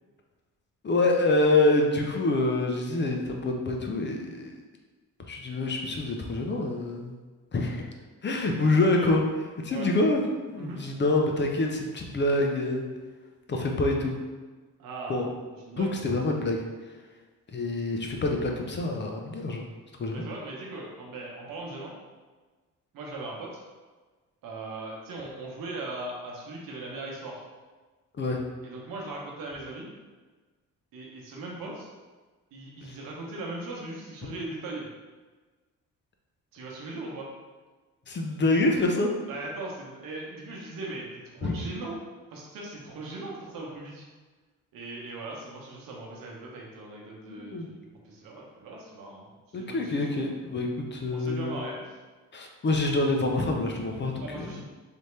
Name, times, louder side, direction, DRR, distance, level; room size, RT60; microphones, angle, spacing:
voice 1, 0.8-4.5 5.3-7.2 7.5-7.9 8.2-9.2 9.6-10.2 10.5-12.9 13.5-14.2 15.1-15.3 15.8-16.6 17.5-19.6 20.0-20.2 28.2-28.4 32.8-32.9 38.1-39.1 41.4-41.5 47.3-47.7 49.5-51.6 52.3-54.6, left 2 dB, 35° left, 2 dB, 0.6 m, -26 dB
voice 2, 14.8-15.2 15.7-16.0 20.1-21.9 22.9-23.5 24.4-27.4 28.6-29.9 30.9-31.9 32.5-34.9 36.5-37.3 39.3-41.1 41.3-42.0 42.3-44.1 44.7-47.8 48.0-50.2 51.1-52.0 54.2-54.6, right 2 dB, 80° right, -2 dB, 1.0 m, -39 dB
3.4 x 2.8 x 3.2 m, 1.3 s
cardioid pair, 90°, 33 cm